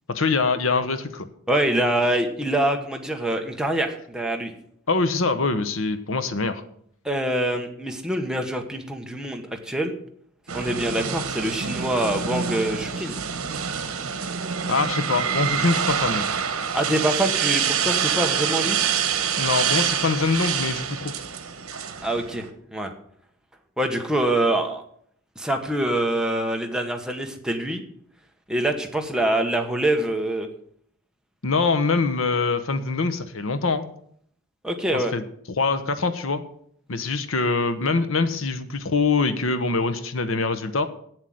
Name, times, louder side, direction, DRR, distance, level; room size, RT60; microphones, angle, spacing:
voice 1, 0.1-1.3 4.9-6.6 14.7-16.3 19.4-21.1 31.4-33.8 34.9-35.2 35.6-36.4 36.9-40.9, left 4 dB, 65° left, 11 dB, 0.9 m, -24 dB
voice 2, 1.5-4.5 7.0-9.9 10.5-13.2 16.7-18.8 22.0-22.5 22.7-22.9 23.8-24.8 25.4-27.8 28.5-30.5 34.6-35.1, right 1 dB, 5° right, 3 dB, 1.1 m, -25 dB
sound 1, 10.5-22.5, right 7 dB, 75° right, 1.3 m, -26 dB
9.0 x 7.6 x 7.8 m, 0.65 s
head